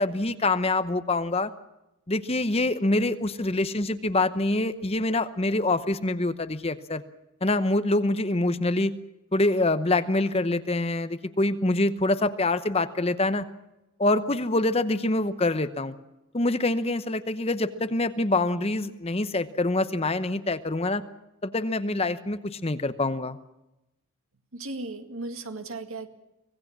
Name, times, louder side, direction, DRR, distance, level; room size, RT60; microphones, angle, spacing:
voice 1, 0.0-1.5 2.1-7.0 7.4-8.9 9.3-13.5 14.0-15.9 16.3-21.0 21.4-23.4, left 2 dB, 25° left, 11 dB, 0.8 m, -25 dB
voice 2, 24.5-26.1, right 2 dB, 70° right, 7 dB, 2.1 m, -36 dB
25.0 x 17.5 x 7.4 m, 0.94 s
head